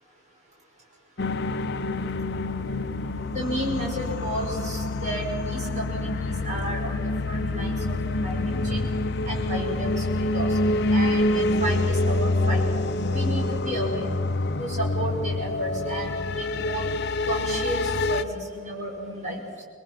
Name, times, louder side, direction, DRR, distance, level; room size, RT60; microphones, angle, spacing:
sound 1, 1.2-18.2, left 2 dB, 55° left, 0.8 m, -26 dB
voice 1, 3.3-8.9 9.2-10.6 10.9-12.6 13.1-14.1 14.6-16.9 17.3-19.6, right 1 dB, 35° right, -1 dB, 5.7 m, -32 dB
27.5 x 21.0 x 6.1 m, 2.2 s
head